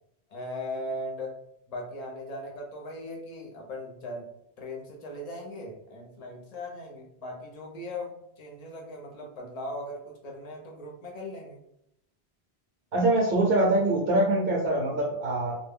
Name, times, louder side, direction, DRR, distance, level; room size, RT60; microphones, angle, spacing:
voice 1, 0.3-1.4 1.7-11.6, left 1 dB, 45° left, 0 dB, 0.7 m, -38 dB
voice 2, 12.9-15.6, right 2 dB, 65° right, -1 dB, 0.8 m, -24 dB
2.2 x 2.1 x 3.4 m, 0.78 s
omnidirectional pair, 1.1 m